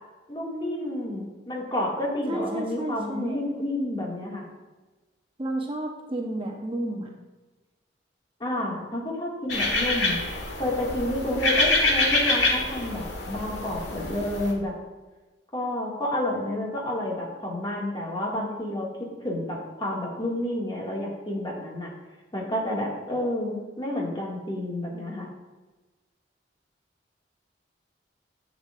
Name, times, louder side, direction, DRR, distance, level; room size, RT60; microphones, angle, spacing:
voice 1, 0.3-4.5 8.4-10.2 10.6-14.8 15.5-21.9 22.3-25.3, left 1 dB, 25° left, -3 dB, 2.0 m, -30 dB
voice 2, 2.3-3.4 5.4-7.1, right 1 dB, 30° right, 1 dB, 0.9 m, -31 dB
sound 1, 9.5-14.5, left 2 dB, 75° left, 1.5 m, -26 dB
11.0 x 8.1 x 2.5 m, 1.2 s
head